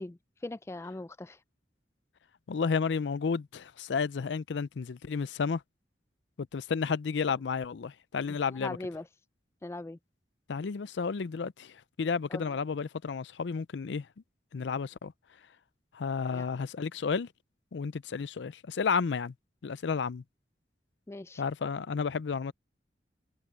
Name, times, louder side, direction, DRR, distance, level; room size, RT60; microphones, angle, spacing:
voice 1, 0.0-1.4 8.5-9.0 9.6-10.0 12.3-12.5 16.3-16.5 21.1-21.4, left 2 dB, 15° left, 0.3 m, -40 dB
voice 2, 2.5-5.6 6.4-8.8 10.5-14.1 14.5-15.1 15.9-17.3 17.7-19.3 19.6-20.2 21.4-22.5, left 5 dB, 80° left, 0.5 m, -32 dB
head